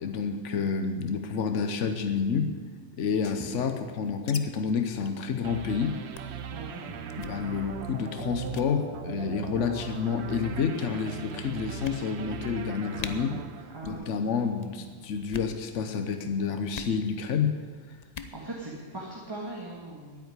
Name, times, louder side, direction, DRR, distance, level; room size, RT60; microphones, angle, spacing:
voice 1, 0.0-2.5 3.0-6.0 7.2-13.4 13.8-17.5, left 6 dB, 75° left, 6 dB, 1.2 m, -29 dB
sound 1, 3.0-4.4 4.7-4.8 5.0-5.2 5.6-5.7 6.1-6.4 7.1-7.4 8.0-8.2 8.5-8.7 9.6-10.0 10.8-10.9 11.3-11.4 11.8-12.4 12.7-12.8 13.0-13.1 13.8-14.1 14.3-14.7 15.2-15.6 16.7-17.0 18.0-18.4, left 6 dB, 40° left, 0.7 m, -41 dB
sound 2, 5.4-14.5, right 8 dB, 65° right, 1.0 m, -39 dB
voice 2, 6.5-6.8 13.7-14.3 18.3-20.2, right 2 dB, 20° right, -3 dB, 1.8 m, -40 dB
9.8 x 9.3 x 9.5 m, 1.5 s
omnidirectional pair, 1.3 m